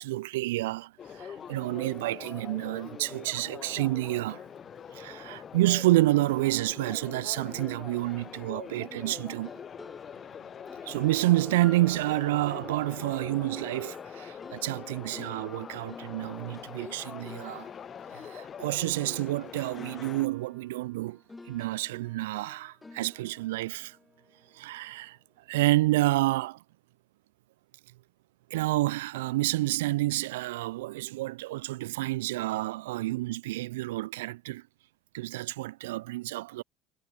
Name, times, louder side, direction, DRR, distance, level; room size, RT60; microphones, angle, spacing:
voice 1, 0.0-4.4 4.9-9.5 10.8-17.7 18.1-21.2 21.5-24.0 24.5-25.2 25.5-26.6 28.5-34.6 35.1-36.6, right 18 dB, 70° right, 0.7 m, -29 dB
sound 1, 1.0-20.3, left 8 dB, 35° left, 0.9 m, -43 dB
sound 2, 7.5-19.5 19.8-25.0, left 3 dB, 15° left, 3.1 m, -52 dB
figure-of-eight pair, 65°, 0 cm